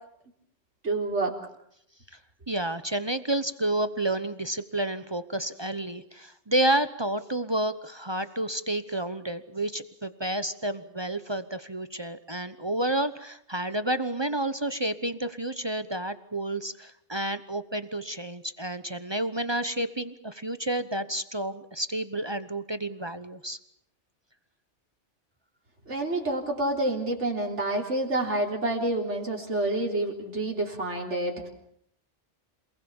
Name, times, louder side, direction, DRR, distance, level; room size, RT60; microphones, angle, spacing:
voice 1, 0.8-1.3 25.9-31.5, right 2 dB, 75° right, 0 dB, 3.8 m, -28 dB
voice 2, 2.5-23.6, right 1 dB, 25° right, 12 dB, 1.0 m, -30 dB
27.5 x 20.0 x 7.2 m, 0.71 s
omnidirectional pair, 1.2 m